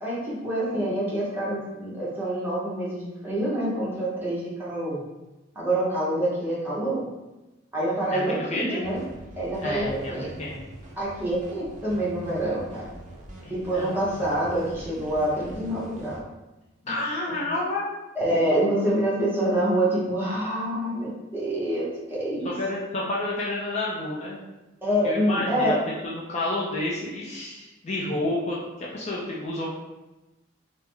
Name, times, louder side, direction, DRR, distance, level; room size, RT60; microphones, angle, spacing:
voice 1, 0.0-5.0 5.5-7.0 7.7-9.0 9.4-10.3 11.0-12.8 13.5-16.2 17.3-17.4 18.1-22.5 24.8-25.8, right 1 dB, 10° right, -7 dB, 0.8 m, -26 dB
voice 2, 8.1-8.8 9.6-10.6 13.4-13.9 16.8-17.9 22.4-24.4 25.0-25.8 26.0-29.7, left 2 dB, 35° left, -5 dB, 0.4 m, -30 dB
sound 1, 8.8-16.2, right 1 dB, 40° right, 0.4 m, -43 dB
3.4 x 2.0 x 3.3 m, 1.1 s
head